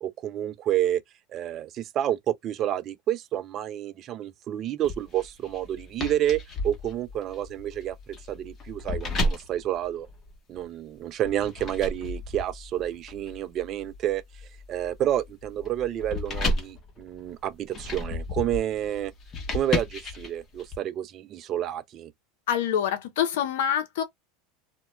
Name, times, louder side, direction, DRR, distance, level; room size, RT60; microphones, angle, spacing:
voice 1, 0.0-1.0 1.3-10.1 10.5-14.2 14.7-19.1 19.5-22.1, right 11 dB, 40° right, 0.4 m, -29 dB
sound 1, 4.8-10.7 11.2-20.8, left 2 dB, 35° left, 0.9 m, -34 dB
voice 2, 22.5-24.0, left 9 dB, 75° left, 0.7 m, -26 dB
2.2 x 2.2 x 2.9 m
supercardioid pair, 110°, 0 cm